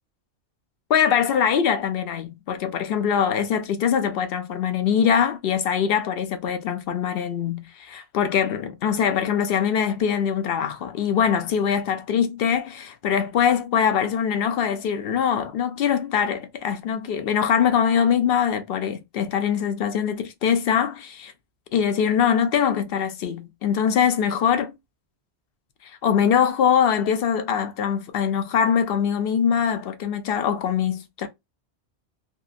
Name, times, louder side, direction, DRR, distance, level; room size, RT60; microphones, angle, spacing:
voice 1, 0.9-21.3 21.7-24.7 25.8-31.3, left 8 dB, 65° left, 0.7 m, -23 dB
2.7 x 2.4 x 2.4 m
omnidirectional pair, 1.1 m